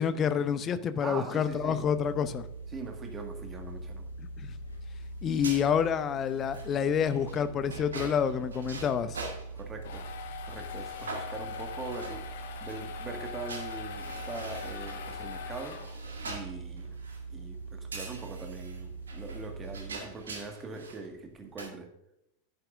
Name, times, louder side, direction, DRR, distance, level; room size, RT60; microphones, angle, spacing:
voice 1, 0.0-2.5 4.2-4.5 5.2-9.2, left 7 dB, 25° left, 13 dB, 0.7 m, -28 dB
voice 2, 1.0-1.8 2.7-4.1 9.5-10.1 10.4-15.8 16.2-17.0 17.3-21.9, right 3 dB, 20° right, 4 dB, 1.8 m, -42 dB
sound 1, 1.4-19.9, right 3 dB, 80° left, 2.5 m, -42 dB
sound 2, 5.1-10.1 10.5-10.6 10.9-12.8 13.5-17.3 17.9-21.1 21.3-21.7, right 3 dB, 70° right, 1.8 m, -44 dB
sound 3, 9.6-16.3, left 8 dB, 55° left, 1.3 m, -42 dB
10.5 x 10.0 x 2.6 m, 0.82 s
figure-of-eight pair, 90°, 0 cm